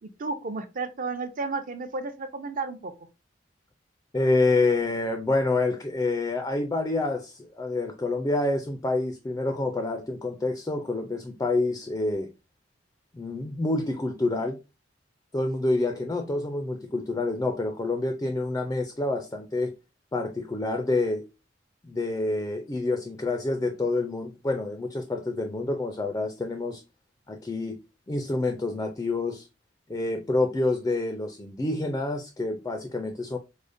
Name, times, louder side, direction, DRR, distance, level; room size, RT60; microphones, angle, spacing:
voice 1, 0.0-2.9, right 3 dB, 45° right, 0.5 m, -32 dB
voice 2, 4.1-12.3 13.1-14.6 15.3-19.7 20.1-21.3 21.8-26.8 27.3-27.8 28.1-29.5 29.9-33.4, left 2 dB, 20° left, 0.3 m, -27 dB
4.8 x 2.1 x 2.5 m
head